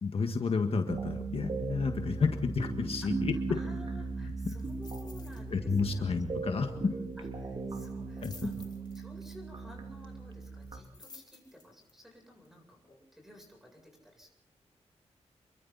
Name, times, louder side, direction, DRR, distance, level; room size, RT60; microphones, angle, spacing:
voice 1, 0.0-3.3 5.5-7.0 8.2-8.5, left 4 dB, 55° left, 5 dB, 1.7 m, -31 dB
sound 1, 0.9-10.8, right 3 dB, 45° right, 2.7 m, -38 dB
voice 2, 3.0-6.1 7.2-14.3, equal, 5° right, 2 dB, 8.0 m, -54 dB
sound 2, 4.6-5.4 5.7-6.0 6.3-6.4 7.9-9.3 10.6-11.9 12.4-12.5, left 4 dB, 40° left, 3.8 m, -54 dB
28.5 x 23.0 x 4.2 m, 0.71 s
wide cardioid pair, 140°, 12 cm